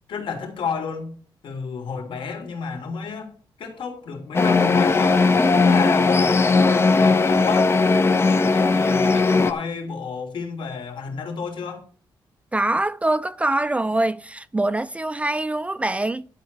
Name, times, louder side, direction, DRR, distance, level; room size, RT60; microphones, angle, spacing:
voice 1, 0.1-1.1 1.4-5.2 5.6-7.7 8.1-11.8, left 5 dB, 65° left, 3.4 m, -31 dB
sound 1, 4.3-9.5, left 4 dB, 30° left, 0.9 m, -18 dB
voice 2, 12.5-16.3, right 2 dB, 15° right, 0.4 m, -24 dB
11.5 x 4.4 x 8.1 m
cardioid pair, 125°, 9 cm